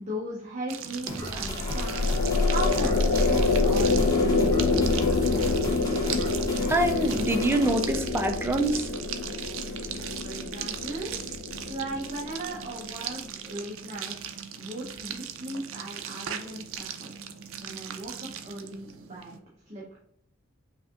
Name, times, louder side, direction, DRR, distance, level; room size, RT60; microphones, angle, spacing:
voice 1, 0.0-5.6 10.2-11.1 11.6-17.1 17.6-19.4 19.7-20.0, right 1 dB, 35° right, -5 dB, 0.8 m, -38 dB
sound 1, 0.7-19.4, right 8 dB, 85° right, 0.4 m, -38 dB
sound 2, 1.1-7.7, equal, 20° left, 0.8 m, -38 dB
sound 3, 1.2-12.7, left 3 dB, 75° left, 0.4 m, -26 dB
voice 2, 6.7-8.9, right 1 dB, 10° right, 5 dB, 0.4 m, -25 dB
5.4 x 2.6 x 2.5 m, 0.73 s
head